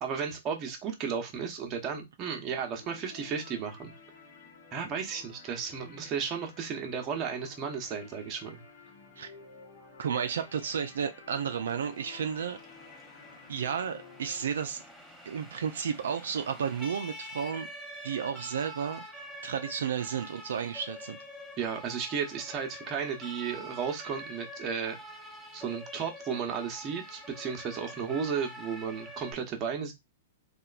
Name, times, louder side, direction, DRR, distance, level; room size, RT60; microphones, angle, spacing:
voice 1, 0.0-3.9 4.7-8.6 21.6-25.0 25.5-29.9, right 6 dB, 30° right, 0.7 m, -34 dB
sound 1, 2.7-14.5, left 4 dB, 55° left, 1.0 m, -52 dB
voice 2, 10.0-12.6 13.5-14.8 15.3-17.7 18.0-19.0 19.4-21.2, right 7 dB, 80° right, 0.3 m, -32 dB
Siren, 11.7-29.3, equal, 5° left, 0.7 m, -46 dB
2.9 x 2.2 x 2.4 m
hypercardioid pair, 125°, 0 cm